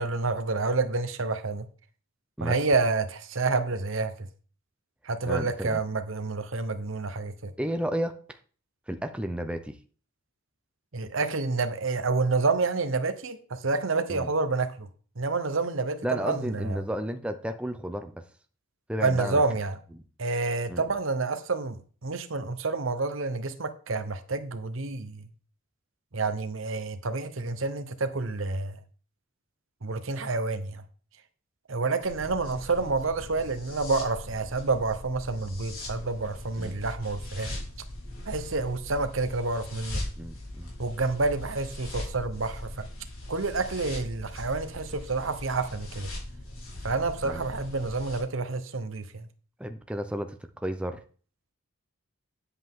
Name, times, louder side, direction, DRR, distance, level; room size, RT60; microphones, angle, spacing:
voice 1, 0.0-1.6 2.4-4.1 5.0-7.5 10.9-14.9 15.2-16.8 19.0-19.8 20.2-25.2 26.1-28.8 29.8-30.8 31.7-37.5 38.3-40.0 40.8-42.7 43.3-46.1 46.8-49.3, right 3 dB, 65° right, 1.0 m, -28 dB
voice 2, 5.3-5.8 7.6-8.4 8.9-9.8 14.1-14.3 16.0-18.3 18.9-19.4 20.7-20.8 36.6-36.8 40.2-40.7 47.2-47.4 49.6-51.0, right 1 dB, 5° right, 0.6 m, -32 dB
sound 1, 32.0-48.2, left 1 dB, 70° left, 4.5 m, -40 dB
10.0 x 8.0 x 3.7 m
head